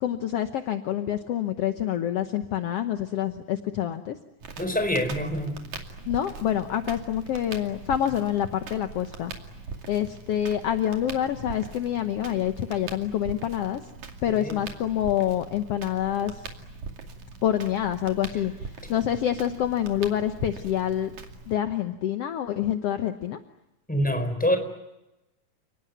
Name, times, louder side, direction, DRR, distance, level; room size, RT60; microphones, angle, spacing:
voice 1, 0.0-4.2 6.1-9.3 9.9-13.8 14.2-16.5 17.4-21.1 21.5-23.4, left 10 dB, 60° left, 8 dB, 1.9 m, -27 dB
Crackle, 4.4-21.5, right 4 dB, 75° right, 3.9 m, -41 dB
voice 2, 4.6-5.6 14.3-14.6 23.9-24.6, equal, 5° left, 7 dB, 4.3 m, -25 dB
30.0 x 19.5 x 9.4 m, 0.95 s
omnidirectional pair, 3.4 m